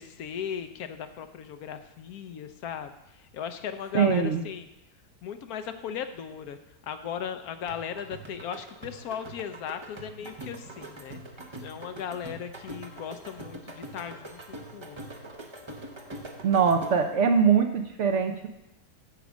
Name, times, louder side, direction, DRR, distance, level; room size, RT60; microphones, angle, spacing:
voice 1, 0.0-2.9 3.3-4.7 5.2-6.6 6.8-11.2 11.6-15.0, left 8 dB, 75° left, 9 dB, 1.1 m, -37 dB
voice 2, 3.9-4.4 16.4-18.5, right 6 dB, 60° right, 5 dB, 0.9 m, -22 dB
sound 1, 7.7-17.2, right 2 dB, 25° right, 0.7 m, -43 dB
9.3 x 5.0 x 7.1 m, 0.90 s
omnidirectional pair, 1.7 m